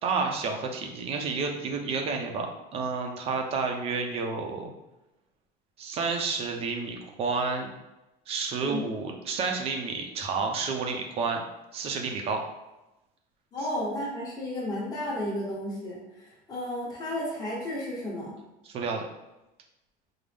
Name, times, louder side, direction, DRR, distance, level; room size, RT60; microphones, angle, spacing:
voice 1, 0.0-4.7 5.8-7.7 8.3-11.4 11.7-12.4 18.6-19.1, right 4 dB, 35° right, 3 dB, 0.5 m, -30 dB
voice 2, 13.5-18.3, left 1 dB, 20° left, -5 dB, 1.2 m, -33 dB
5.2 x 2.0 x 3.4 m, 0.96 s
cardioid pair, 165°, 17 cm